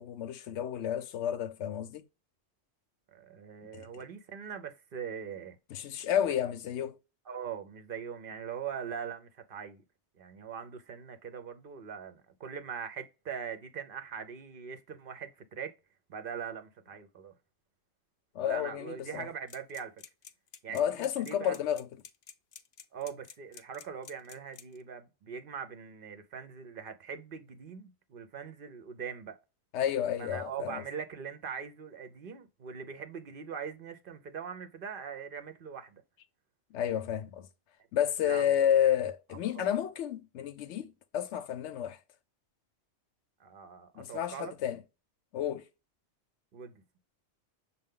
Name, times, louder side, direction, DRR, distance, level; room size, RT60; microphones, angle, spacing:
voice 1, 0.0-2.0 3.7-3.8 5.7-7.0 18.3-19.3 20.7-21.9 29.7-30.8 36.7-37.5 37.9-42.0 44.0-44.8 45.3-45.6, left 10 dB, 85° left, 0.9 m, -31 dB
voice 2, 3.1-5.6 7.3-9.8 10.2-15.7 16.1-17.3 18.4-19.9 20.6-21.6 22.9-29.4 30.2-36.0 38.2-38.6 39.5-39.7 43.4-44.5 46.5-46.8, right 7 dB, 60° right, 0.8 m, -41 dB
sound 1, 19.5-24.8, left 8 dB, 60° left, 0.7 m, -50 dB
6.5 x 2.2 x 3.6 m
omnidirectional pair, 1.2 m